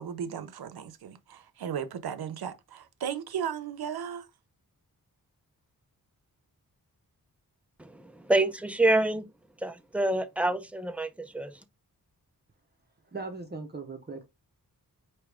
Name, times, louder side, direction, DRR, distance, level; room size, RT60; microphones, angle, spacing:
voice 1, 0.0-4.3, right 8 dB, 85° right, 0.7 m, -36 dB
voice 2, 7.8-9.2 9.6-11.5, right 2 dB, 5° right, 0.4 m, -27 dB
voice 3, 13.1-14.2, right 3 dB, 25° right, 0.8 m, -38 dB
4.8 x 2.9 x 3.3 m
wide cardioid pair, 120°, 36 cm